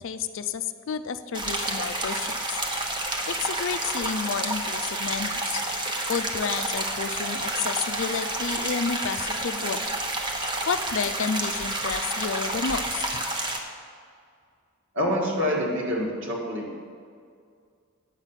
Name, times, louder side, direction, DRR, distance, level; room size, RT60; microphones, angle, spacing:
voice 1, 0.0-2.6 3.3-5.6 6.1-10.0 10.7-13.2, left 6 dB, 60° left, 11 dB, 0.4 m, -31 dB
sound 1, 1.3-13.6, right 1 dB, 20° right, 0.8 m, -29 dB
voice 2, 14.9-16.7, equal, 60° right, -2 dB, 1.9 m, -26 dB
8.9 x 7.1 x 5.8 m, 2.2 s
head